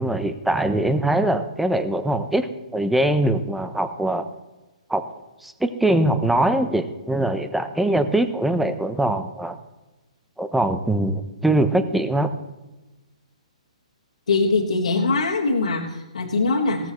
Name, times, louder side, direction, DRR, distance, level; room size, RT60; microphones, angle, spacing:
voice 1, 0.0-4.3 4.9-5.0 5.4-9.6 10.4-12.3, right 1 dB, 5° right, 10 dB, 0.9 m, -22 dB
voice 2, 14.3-16.9, left 3 dB, 75° left, -3 dB, 1.9 m, -22 dB
16.5 x 13.5 x 3.2 m, 1.1 s
hypercardioid pair, 130°, 4 cm